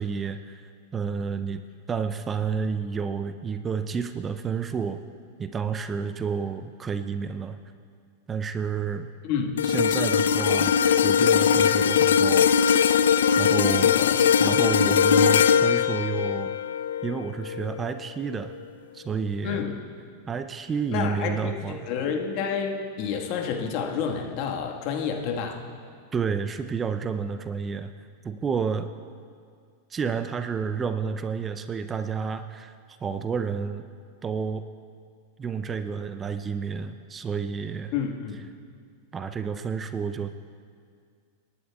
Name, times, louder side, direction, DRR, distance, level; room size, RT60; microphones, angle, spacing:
voice 1, 0.0-5.0 5.4-7.6 8.3-9.1 9.6-12.6 13.4-13.9 14.4-16.5 17.0-18.5 18.9-19.6 20.3-21.8 26.1-27.9 28.2-28.9 29.9-32.8 33.0-33.9 34.2-34.6 35.4-37.9 39.1-40.3, right 6 dB, 25° right, 10 dB, 0.5 m, -30 dB
voice 2, 9.2-9.6 13.7-14.2 19.4-19.8 20.9-25.6 37.9-38.5, left 7 dB, 50° left, 2 dB, 1.5 m, -29 dB
sound 1, 9.6-17.9 18.4-18.6, left 7 dB, 75° left, 0.3 m, -21 dB
27.0 x 11.0 x 2.3 m, 2.1 s
hypercardioid pair, 95°, 0 cm